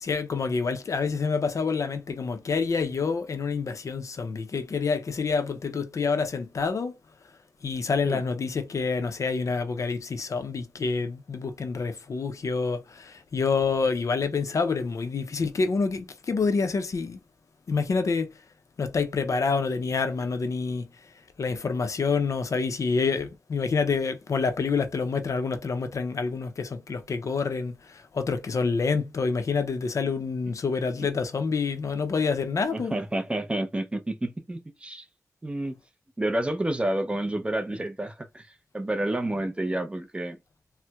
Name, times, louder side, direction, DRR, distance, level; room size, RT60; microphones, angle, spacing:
voice 1, 0.0-6.9 7.6-17.2 17.7-18.3 18.8-20.8 21.4-27.7 28.1-33.0, left 4 dB, 60° left, 0.5 m, -27 dB
voice 2, 32.7-35.1 35.4-35.7 36.2-38.5 38.7-40.4, right 1 dB, 20° right, 0.4 m, -29 dB
4.2 x 2.0 x 2.2 m
wide cardioid pair, 125°, 6 cm